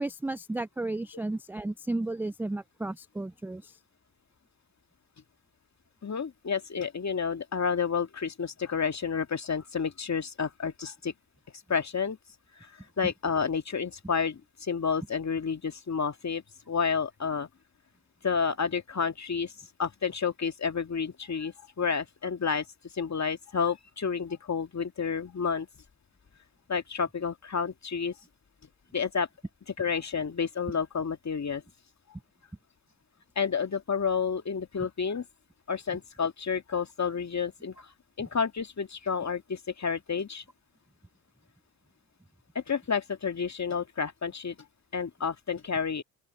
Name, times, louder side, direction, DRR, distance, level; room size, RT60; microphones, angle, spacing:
voice 1, 0.0-3.8 13.0-13.1, right 2 dB, 5° right, 0.4 m, -33 dB
voice 2, 6.0-11.1 11.7-12.2 12.6-12.7 13.0-17.5 18.2-19.5 19.8-22.7 22.9-25.7 26.7-28.2 28.9-29.3 29.8-31.6 33.4-35.2 35.7-37.9 38.2-40.4 42.6-44.6 44.9-46.0, left 6 dB, 35° left, 2.2 m, -30 dB
open air
hypercardioid pair, 50°, 49 cm